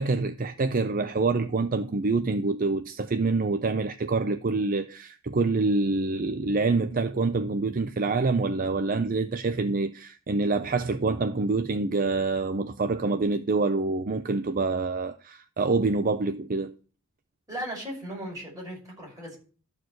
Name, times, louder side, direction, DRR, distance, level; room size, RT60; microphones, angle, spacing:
voice 1, 0.0-16.7, right 3 dB, 45° right, 0.5 m, -26 dB
voice 2, 17.5-19.4, equal, 15° right, 6.0 m, -37 dB
12.5 x 4.7 x 7.7 m
head